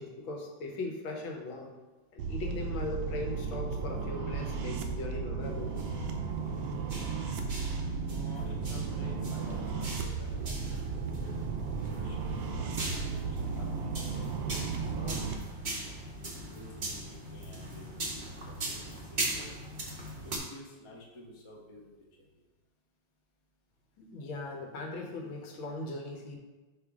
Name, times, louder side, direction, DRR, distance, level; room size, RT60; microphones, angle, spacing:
voice 1, 0.0-1.7 2.1-5.7 24.0-26.4, left 2 dB, 75° left, 1 dB, 1.7 m, -39 dB
sound 1, 2.2-15.3, right 5 dB, 80° right, 1.4 m, -35 dB
sound 2, 5.4-20.4, right 1 dB, 40° right, 0.7 m, -40 dB
voice 2, 8.1-11.3 11.8-15.3 16.4-19.5 20.2-22.3, left 1 dB, 40° left, -2 dB, 0.4 m, -51 dB
5.6 x 5.0 x 3.6 m, 1.2 s
omnidirectional pair, 2.3 m